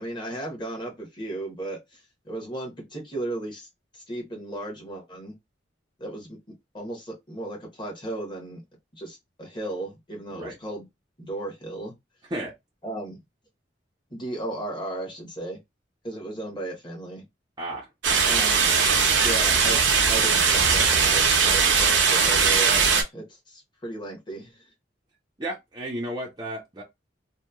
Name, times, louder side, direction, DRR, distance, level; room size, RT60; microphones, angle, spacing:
voice 1, 0.0-3.7 3.9-5.3 6.0-6.4 6.7-8.6 8.9-10.9 11.2-11.9 12.8-13.2 14.1-15.6 16.0-17.2 18.3-18.7 19.2-19.8 20.1-24.7, right 1 dB, 25° left, 1.0 m, -35 dB
voice 2, 17.6-17.9 25.4-26.8, right 1 dB, 20° right, 0.5 m, -33 dB
sound 1, 18.0-23.0, right 5 dB, 75° right, 0.7 m, -20 dB
2.9 x 2.1 x 2.2 m
head